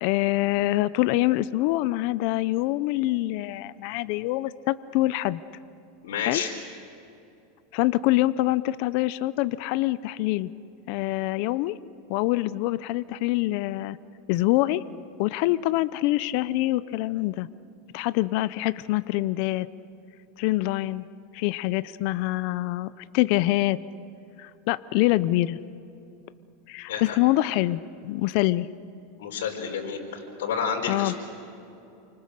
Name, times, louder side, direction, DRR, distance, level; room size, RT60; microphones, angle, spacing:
voice 1, 0.0-5.4 6.2-6.4 7.7-10.5 10.9-11.8 12.1-14.0 14.3-14.8 15.2-17.5 17.9-19.7 20.4-21.0 21.3-23.8 24.4-25.6 26.7-28.7 30.9-31.1, left 17 dB, 50° left, 16 dB, 0.6 m, -25 dB
voice 2, 6.0-6.5 26.9-27.2 29.2-31.2, left 6 dB, 90° left, -1 dB, 5.0 m, -30 dB
29.0 x 25.0 x 6.7 m, 2.8 s
supercardioid pair, 155°, 0 cm